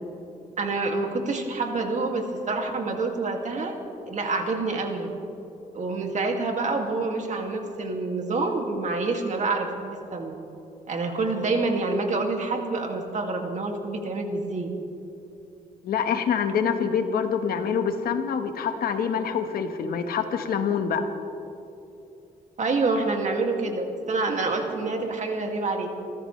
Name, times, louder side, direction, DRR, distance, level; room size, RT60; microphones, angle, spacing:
voice 1, 0.6-3.7 4.1-5.1 5.7-10.4 10.9-14.7 22.6-25.9, right 3 dB, 55° right, 2 dB, 2.4 m, -27 dB
voice 2, 15.8-21.0, left 7 dB, 80° left, 7 dB, 1.4 m, -26 dB
29.5 x 14.0 x 3.3 m, 2.9 s
cardioid pair, 85°, 15 cm